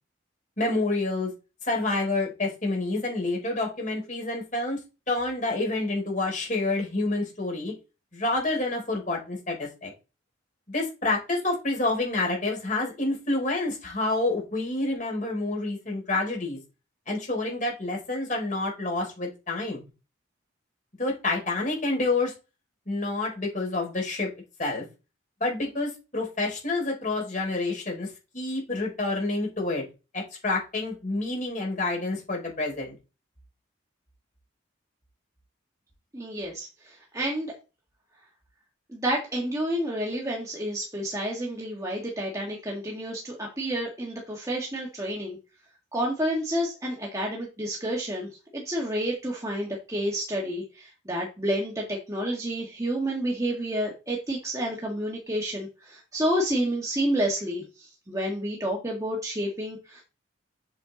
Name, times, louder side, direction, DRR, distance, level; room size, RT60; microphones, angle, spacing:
voice 1, 0.6-1.3 1.6-4.8 5.1-7.7 8.1-9.9 10.7-16.6 17.1-19.9 21.0-22.3 22.9-24.3 24.6-24.8 25.4-29.8 30.1-32.9, left 2 dB, 40° left, 0 dB, 4.4 m, -28 dB
voice 2, 36.1-37.5 38.9-45.4 45.9-57.6 58.1-60.0, right 1 dB, 15° right, -2 dB, 1.9 m, -30 dB
8.0 x 6.7 x 4.1 m, 0.30 s
head